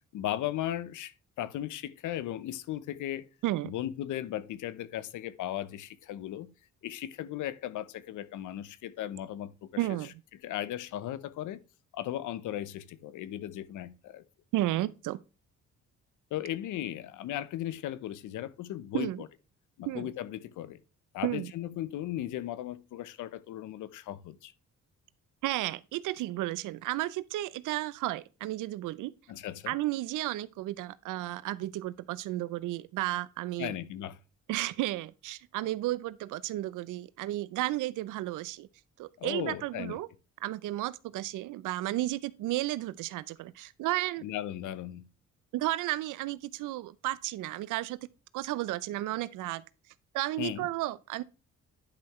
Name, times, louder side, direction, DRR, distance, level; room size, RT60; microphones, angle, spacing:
voice 1, 0.1-3.3 3.6-6.5 6.8-10.0 10.4-11.6 11.9-14.2 16.3-19.3 19.8-20.8 21.1-24.5 29.3-29.8 33.6-34.2 39.2-40.0 44.2-45.1 50.4-50.7, left 12 dB, 85° left, 0.8 m, -37 dB
voice 2, 3.4-3.7 9.8-10.1 14.5-15.2 18.9-19.2 19.9-20.1 21.2-21.5 25.4-29.1 29.7-33.7 34.5-38.7 39.0-40.1 40.4-44.2 45.5-48.0 48.3-49.6 50.1-51.2, right 16 dB, 85° right, 0.6 m, -33 dB
10.0 x 5.8 x 3.1 m
cardioid pair, 90°, 30 cm